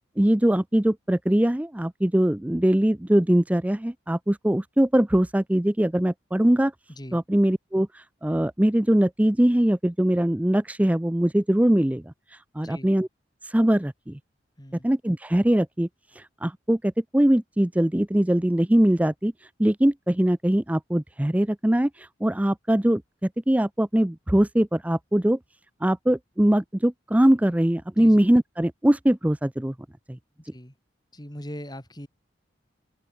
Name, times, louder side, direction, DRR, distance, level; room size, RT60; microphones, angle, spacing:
voice 1, 0.2-6.7 7.1-13.1 13.4-14.2 14.8-25.4 25.8-29.7 30.1-30.2, right 1 dB, 10° right, 0.5 m, -22 dB
voice 2, 6.9-7.2 12.6-12.9 14.6-14.9 28.0-28.2 30.5-30.7 31.1-32.1, equal, 20° left, 6.7 m, -40 dB
open air
head